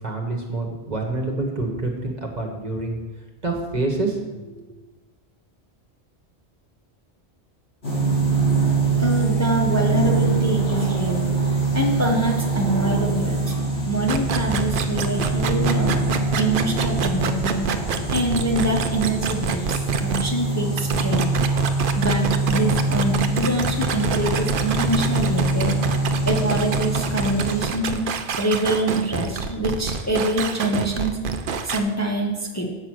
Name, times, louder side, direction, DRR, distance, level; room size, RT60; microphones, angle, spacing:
voice 1, 0.0-3.0 3.4-4.5, right 2 dB, 40° right, 1 dB, 1.3 m, -27 dB
sound 1, 7.8-27.6, right 3 dB, 70° left, 3.5 m, -24 dB
voice 2, 9.0-16.0 16.4-17.7 18.1-21.3 22.0-25.8 26.3-28.1 28.4-31.2 31.6-32.7, right 1 dB, 15° left, -1 dB, 0.9 m, -25 dB
sound 2, 14.1-20.2 20.8-31.8, right 6 dB, 60° right, 0.7 m, -27 dB
8.1 x 5.8 x 6.2 m, 1.2 s
omnidirectional pair, 1.1 m